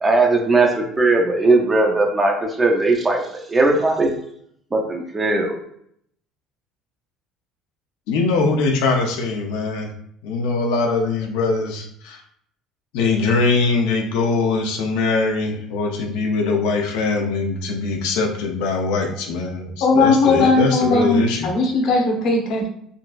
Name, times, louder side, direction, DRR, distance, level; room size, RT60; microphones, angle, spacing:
voice 1, 0.0-4.1 4.7-5.6, right 2 dB, 15° right, 1 dB, 0.4 m, -18 dB
voice 2, 8.1-9.9 10.2-12.2 12.9-21.5, left 3 dB, 80° left, 3 dB, 0.5 m, -22 dB
voice 3, 19.8-22.7, left 3 dB, 50° left, 1 dB, 0.8 m, -18 dB
3.8 x 2.4 x 2.4 m, 0.68 s
cardioid pair, 170°, 0 cm